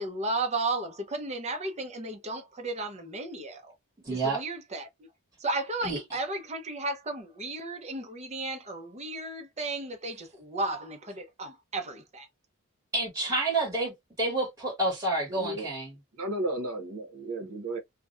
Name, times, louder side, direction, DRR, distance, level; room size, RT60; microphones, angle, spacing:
voice 1, 0.0-3.7 4.1-4.9 5.4-12.3, right 2 dB, 30° right, 0.6 m, -34 dB
voice 2, 4.0-4.4 5.8-6.0 12.9-15.9, right 2 dB, 15° right, 1.2 m, -29 dB
voice 3, 15.3-15.7 16.1-17.8, right 1 dB, 80° right, 0.7 m, -33 dB
2.4 x 2.1 x 2.4 m
head